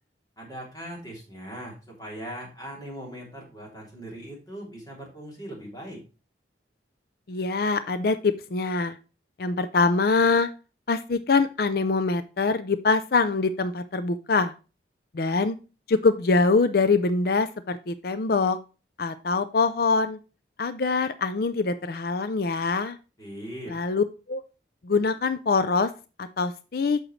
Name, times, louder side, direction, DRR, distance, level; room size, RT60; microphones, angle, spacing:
voice 1, 0.4-6.0 23.2-23.8, equal, 20° left, -2 dB, 3.1 m, -40 dB
voice 2, 7.3-9.0 9.4-10.5 10.9-14.5 15.1-15.6 15.9-18.6 19.0-20.2 20.6-23.0 23.7-24.4 24.8-25.9 26.2-27.0, left 4 dB, 55° left, 11 dB, 0.5 m, -24 dB
8.8 x 6.4 x 3.2 m, 0.32 s
head